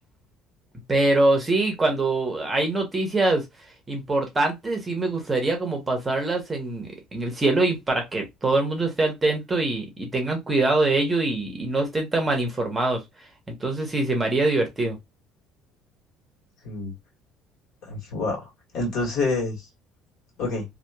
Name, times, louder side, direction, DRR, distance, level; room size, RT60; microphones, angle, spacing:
voice 1, 0.9-3.4 3.9-13.0 13.5-15.0, right 2 dB, 15° right, 0.8 m, -24 dB
voice 2, 17.9-19.6 20.4-20.6, left 3 dB, 65° left, 1.6 m, -27 dB
2.8 x 2.2 x 2.2 m
cardioid pair, 135°, 0 cm